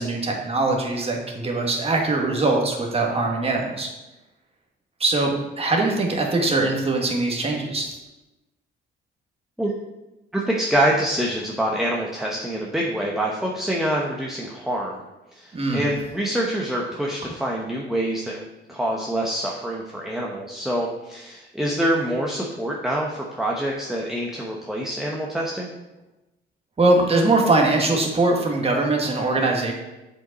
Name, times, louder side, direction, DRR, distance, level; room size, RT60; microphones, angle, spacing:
voice 1, 0.0-3.9 5.0-8.0 15.5-15.9 26.8-29.7, right 2 dB, 30° right, 0 dB, 1.7 m, -22 dB
voice 2, 10.3-15.0 15.3-25.7, right 1 dB, ahead, -3 dB, 0.9 m, -26 dB
7.6 x 5.2 x 4.1 m, 1.0 s
cardioid pair, 90°, 20 cm